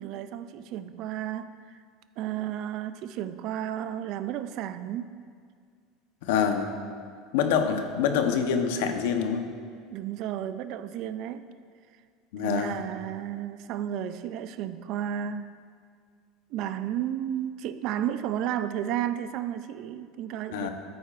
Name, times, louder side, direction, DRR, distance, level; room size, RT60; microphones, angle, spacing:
voice 1, 0.0-1.8 2.2-5.1 9.9-11.5 12.4-15.5 16.5-20.7, right 10 dB, 50° right, 0.4 m, -33 dB
voice 2, 6.2-6.7 7.3-9.5 12.3-12.8 20.5-20.7, left 7 dB, 85° left, 0.9 m, -26 dB
13.5 x 9.3 x 2.5 m
cardioid pair, 155°, 0 cm